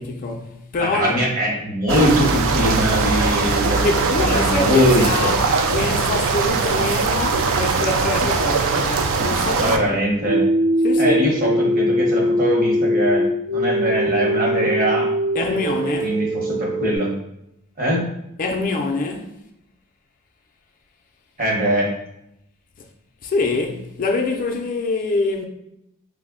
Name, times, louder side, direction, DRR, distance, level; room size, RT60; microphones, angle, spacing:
voice 1, 0.0-1.2 3.8-5.4 5.7-10.0 10.8-11.2 15.3-16.2 18.4-19.4 23.2-25.4, left 3 dB, 40° left, 0.4 m, -25 dB
voice 2, 0.8-5.3 9.5-10.5 11.0-13.2 13.5-15.1 15.5-15.6 16.0-17.2 17.8-18.0 21.4-21.9, equal, 40° right, 0.9 m, -21 dB
sound 1, 1.9-9.8, right 4 dB, 60° right, 0.3 m, -21 dB
sound 2, 10.3-17.0, equal, 90° right, 0.7 m, -21 dB
3.2 x 2.0 x 3.6 m
head